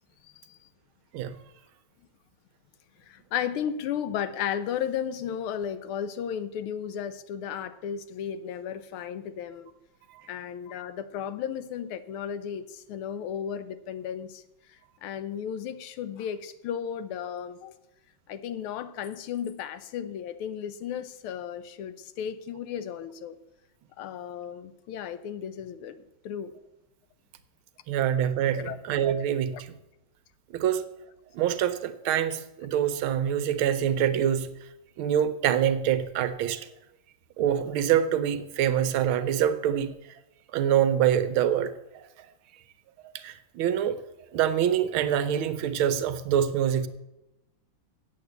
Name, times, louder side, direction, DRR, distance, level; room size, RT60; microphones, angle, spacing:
voice 1, 0.2-0.6 3.1-9.7 10.3-14.4 14.7-17.7 18.3-23.4 24.0-26.5 28.5-28.8 29.5-29.6, left 8 dB, 90° left, 12 dB, 1.6 m, -34 dB
voice 2, 27.9-29.7 30.5-30.8 31.3-34.5 35.0-36.7 37.4-39.9 40.5-42.0 43.1-43.9 44.3-46.9, right 9 dB, 80° right, 11 dB, 1.5 m, -25 dB
8.0 x 7.8 x 8.1 m, 0.92 s
omnidirectional pair, 2.3 m